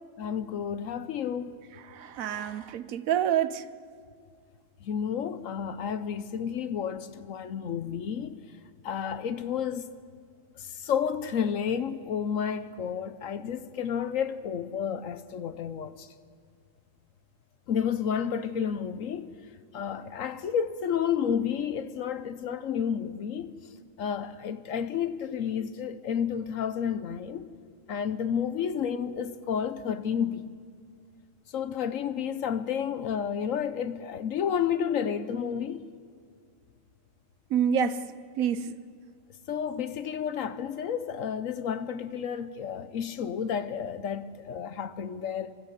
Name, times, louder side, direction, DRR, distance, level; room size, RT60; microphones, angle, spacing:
voice 1, 0.2-1.6 4.8-8.3 8.8-9.9 10.6-16.1 17.7-19.3 19.7-23.5 24.0-27.5 27.9-30.5 31.5-35.8 39.5-45.5, left 8 dB, 70° left, 1.1 m, -31 dB
voice 2, 1.9-3.6 37.5-38.0 38.4-38.7, right 8 dB, 80° right, 1.1 m, -27 dB
25.5 x 14.0 x 8.2 m
omnidirectional pair, 1.4 m